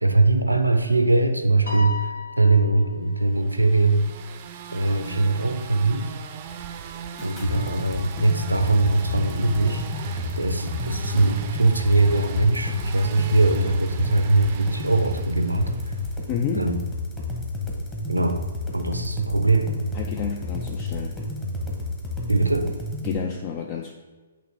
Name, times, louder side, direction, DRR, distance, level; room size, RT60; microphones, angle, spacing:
voice 1, 0.0-4.1 4.7-6.2 7.2-15.9 16.5-16.9 18.1-18.4 18.7-19.7 22.3-22.7, right 2 dB, 90° right, 7 dB, 0.6 m, -21 dB
Piano, 1.7-3.2, left 3 dB, 75° left, 1.3 m, -34 dB
sound 1, 3.3-16.2, right 8 dB, 35° right, 0.5 m, -39 dB
sound 2, 7.2-23.2, left 2 dB, 15° left, 1.2 m, -31 dB
voice 2, 16.3-16.7 19.9-21.2 23.0-23.9, left 8 dB, 35° left, 3 dB, 0.4 m, -30 dB
8.4 x 3.0 x 4.7 m, 1.3 s
figure-of-eight pair, 125°, 0 cm